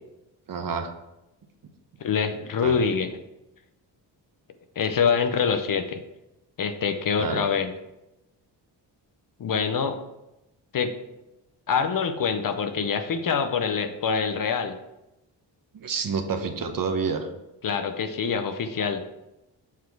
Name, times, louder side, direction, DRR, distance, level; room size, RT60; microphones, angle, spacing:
voice 1, 0.5-0.9 2.6-2.8 7.2-7.5 15.7-17.3, right 5 dB, 50° right, 6 dB, 0.9 m, -28 dB
voice 2, 2.0-3.1 4.8-6.0 6.6-7.7 9.4-10.0 10.7-10.9 11.7-14.8 17.6-19.0, left 6 dB, 50° left, 9 dB, 0.7 m, -25 dB
7.2 x 4.1 x 4.6 m, 0.93 s
cardioid pair, 90°, 44 cm